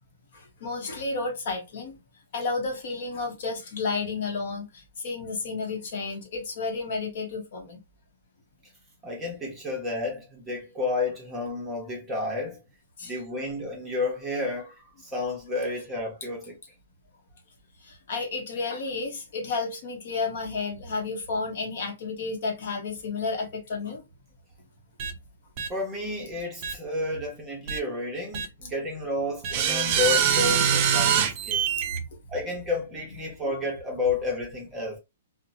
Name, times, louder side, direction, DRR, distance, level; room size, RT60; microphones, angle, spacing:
voice 1, 0.3-2.0 2.3-7.8 13.0-13.1 17.8-24.0 28.6-28.7 31.9-32.0 33.2-33.3, left 4 dB, 50° left, 0.9 m, -32 dB
voice 2, 9.0-12.6 13.0-14.7 15.0-16.5 25.7-31.6 32.3-35.0, left 2 dB, 10° right, 0.8 m, -31 dB
sound 1, 25.0-25.1 25.6-25.7 26.6-26.7 27.7-27.8 28.3-28.5 29.4-32.0, right 8 dB, 30° right, 0.4 m, -24 dB
2.9 x 2.1 x 2.7 m
hypercardioid pair, 170°, 0 cm